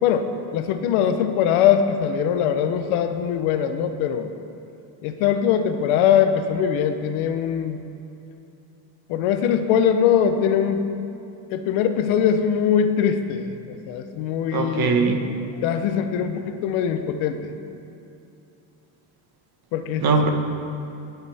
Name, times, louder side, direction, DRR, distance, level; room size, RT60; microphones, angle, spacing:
voice 1, 0.0-4.3 5.0-7.8 9.1-10.9 11.5-15.0 15.6-17.5 19.7-20.1, left 8 dB, 85° left, 9 dB, 0.9 m, -22 dB
voice 2, 14.5-15.3 20.0-20.3, right 4 dB, 50° right, 4 dB, 1.5 m, -20 dB
18.5 x 8.2 x 3.5 m, 2.8 s
cardioid pair, 100°, 47 cm